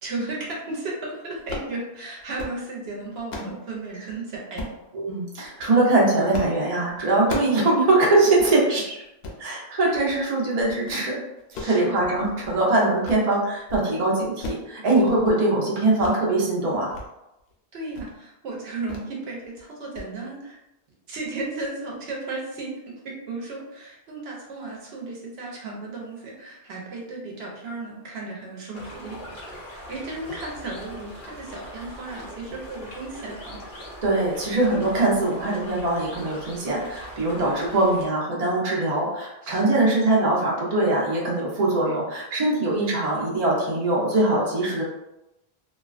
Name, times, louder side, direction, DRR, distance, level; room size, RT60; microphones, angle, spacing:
voice 1, 0.0-4.7 11.5-11.9 17.7-20.6 21.1-33.6 37.7-37.9 39.4-39.9, right 3 dB, 75° right, -2 dB, 0.8 m, -35 dB
sound 1, 1.4-1.7 2.2-2.6 3.0-3.6 4.6-4.8 5.4-5.8 6.3-6.6 6.9-7.6 8.0-8.1 8.4-8.5 9.1-9.4 9.9-10.2 10.6-11.0 11.4-12.6 12.9-13.3 13.6-13.9 14.1-14.7 15.0-15.4 16.0-16.2 16.6-17.1 17.4-17.5 17.9-18.2 18.9-19.1 19.4-19.6 19.9-20.1, left 2 dB, 85° left, 0.8 m, -36 dB
voice 2, 4.9-9.0 9.4-11.2 11.6-16.9 34.0-44.8, right 2 dB, 45° right, -4 dB, 0.7 m, -22 dB
sound 2, 28.7-38.1, equal, 55° left, 0.8 m, -41 dB
2.3 x 2.2 x 2.3 m, 0.92 s
omnidirectional pair, 1.1 m